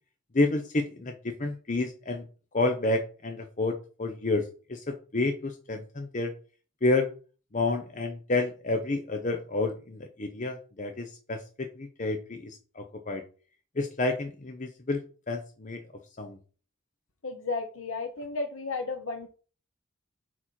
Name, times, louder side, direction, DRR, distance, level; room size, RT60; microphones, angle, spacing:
voice 1, 0.3-2.3 2.5-6.3 6.8-7.1 7.5-13.2 13.8-15.0 15.3-15.8 16.2-16.4, left 2 dB, 40° left, 5 dB, 0.8 m, -30 dB
voice 2, 17.2-19.3, left 3 dB, 85° left, 5 dB, 0.9 m, -33 dB
8.6 x 4.3 x 4.5 m, 0.38 s
head